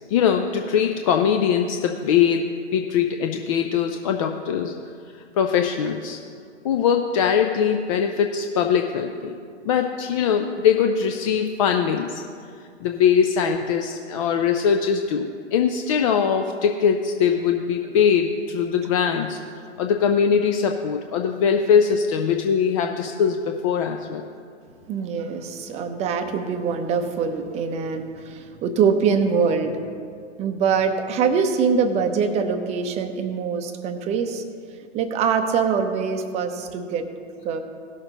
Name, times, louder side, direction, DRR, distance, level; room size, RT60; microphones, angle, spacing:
voice 1, 0.1-4.7 5.3-6.2 6.6-9.4 9.6-12.2 12.8-19.4 19.8-24.2, left 7 dB, 30° left, 4 dB, 0.4 m, -21 dB
voice 2, 24.9-34.4 34.8-37.0 37.4-37.6, right 6 dB, 20° right, 6 dB, 0.6 m, -24 dB
16.5 x 6.4 x 3.8 m, 2.2 s
figure-of-eight pair, 115°, 35 cm